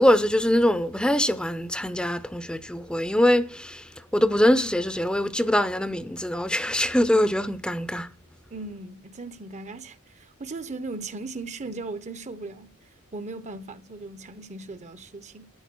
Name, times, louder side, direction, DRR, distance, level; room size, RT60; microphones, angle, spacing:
voice 1, 0.0-8.1, left 1 dB, 5° left, 0.6 m, -23 dB
voice 2, 8.5-12.8 13.1-15.5, right 3 dB, 30° right, 0.8 m, -38 dB
14.0 x 8.9 x 6.1 m
head